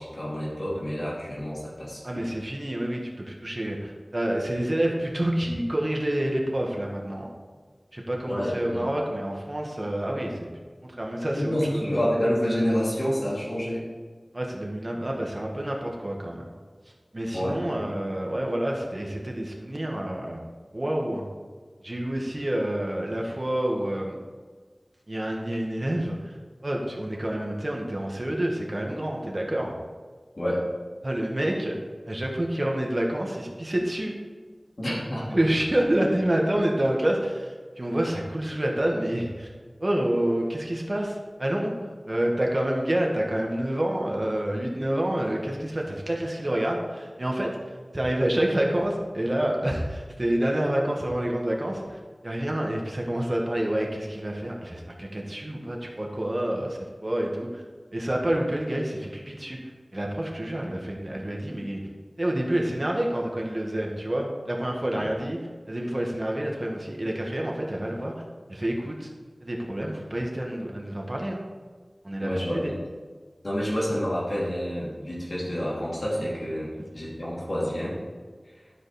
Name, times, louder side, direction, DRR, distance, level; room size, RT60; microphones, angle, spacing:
voice 1, 0.0-2.2 8.3-8.8 11.4-13.9 17.3-17.8 30.4-30.6 34.8-35.3 64.9-65.0 72.2-72.8 73.4-78.0, equal, 75° left, -7 dB, 2.7 m, -28 dB
voice 2, 2.0-7.3 7.9-10.5 10.8-12.0 14.3-16.5 17.1-20.4 20.7-21.2 21.8-24.2 25.1-26.3 26.6-29.7 31.0-31.8 32.1-34.1 35.3-39.5 39.8-47.5 47.9-57.6 57.9-59.6 59.9-61.8 62.2-65.4 65.7-68.1 68.5-69.1 69.4-71.4 72.0-72.7 76.8-76.9, right 1 dB, 45° right, 0 dB, 1.6 m, -28 dB
11.5 x 5.0 x 4.3 m, 1.5 s
wide cardioid pair, 50°, 0 cm